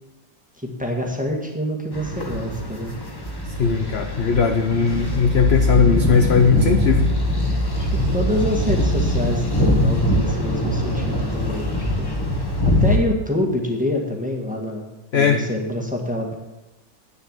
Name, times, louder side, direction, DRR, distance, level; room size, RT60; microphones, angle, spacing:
voice 1, 0.6-2.9 7.8-14.8 15.1-16.4, left 1 dB, 5° right, 1 dB, 1.5 m, -26 dB
sound 1, 1.9-13.0, left 1 dB, 15° left, 1.2 m, -22 dB
voice 2, 3.6-7.1 15.1-15.4, left 6 dB, 55° left, 6 dB, 0.7 m, -18 dB
9.1 x 6.9 x 8.8 m, 1.0 s
omnidirectional pair, 1.9 m